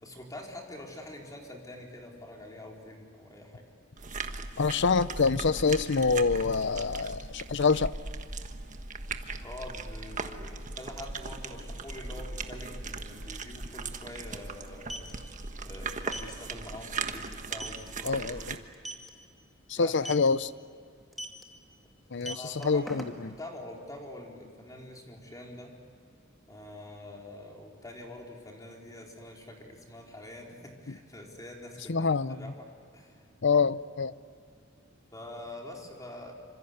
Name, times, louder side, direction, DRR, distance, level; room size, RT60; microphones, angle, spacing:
voice 1, 0.0-3.6 9.4-18.7 19.8-20.0 22.2-25.7 26.5-32.7 32.9-33.2 35.1-36.3, left 1 dB, 20° left, 0 dB, 4.2 m, -45 dB
sound 1, 4.0-18.6, right 4 dB, 40° right, 1.4 m, -38 dB
voice 2, 4.6-7.9 18.0-18.4 19.7-20.5 22.1-22.4 22.6-23.0 31.9-32.4 33.4-34.1, left 4 dB, 60° left, 16 dB, 0.7 m, -26 dB
sound 2, 13.1-13.2 13.4-13.6 14.6-15.1 16.1-16.3 16.7-16.9 17.3-17.4 17.6-17.9 18.7-19.1 20.0-20.3 21.1-21.4 22.1-23.4, right 1 dB, ahead, 2.4 m, -39 dB
27.0 x 26.0 x 8.0 m, 2.4 s
head